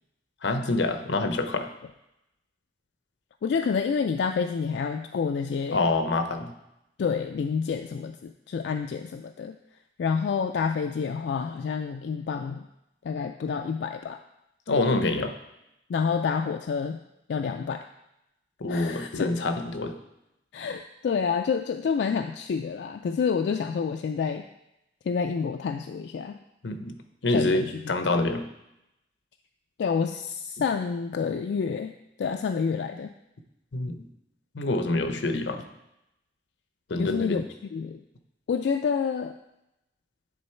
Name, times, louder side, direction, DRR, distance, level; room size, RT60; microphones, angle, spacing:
voice 1, 0.4-1.7 5.7-6.5 14.7-15.3 18.6-19.9 26.6-26.9 27.2-28.4 33.7-34.0 34.5-35.6 36.9-37.4, left 2 dB, 90° left, 8 dB, 0.7 m, -26 dB
voice 2, 3.4-5.8 7.0-9.6 10.0-12.7 13.0-14.2 15.9-17.0 17.3-17.8 18.7-19.3 20.5-24.4 25.1-26.4 27.3-27.9 28.2-28.3 29.8-31.9 32.2-33.1 37.0-37.5 37.7-38.0 38.5-39.4, left 6 dB, 70° left, 6 dB, 0.3 m, -28 dB
9.6 x 3.9 x 4.4 m, 0.87 s
head